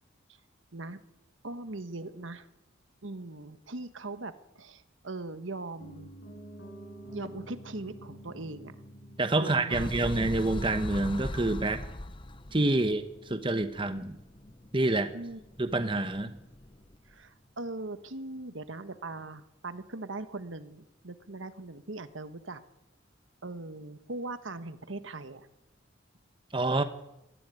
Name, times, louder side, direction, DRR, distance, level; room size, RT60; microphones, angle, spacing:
voice 1, 1.4-2.5 3.0-6.1 7.1-8.7 9.4-10.0 15.1-15.4 17.1-22.6 23.4-25.5, right 2 dB, 75° right, 11 dB, 1.4 m, -40 dB
Piano, 5.8-15.8 16.1-16.2, right 1 dB, 65° left, 4.9 m, -51 dB
voice 2, 9.2-11.8 12.5-14.2 14.7-15.1 15.6-16.4 26.5-26.8, right 2 dB, 25° right, 9 dB, 1.1 m, -27 dB
sound 1, 9.7-17.1, left 1 dB, 25° left, 0.8 m, -41 dB
20.0 x 14.5 x 9.3 m, 0.89 s
head